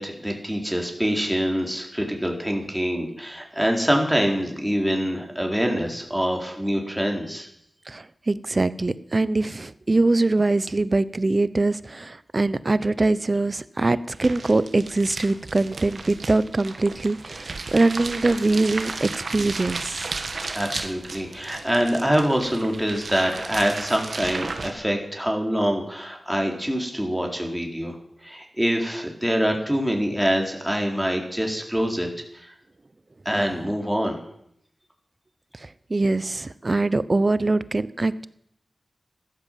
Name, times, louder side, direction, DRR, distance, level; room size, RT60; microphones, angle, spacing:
voice 1, 0.0-7.5 20.5-28.0 28.2-32.1 32.3-32.5 33.3-34.2, equal, 5° right, 1 dB, 4.0 m, -25 dB
voice 2, 7.9-20.1 35.6-38.2, right 2 dB, 45° right, 16 dB, 0.9 m, -23 dB
sound 1, 14.1-24.7, right 3 dB, 75° right, 1.5 m, -34 dB
14.5 x 12.5 x 7.5 m, 0.73 s
cardioid pair, 45°, 0 cm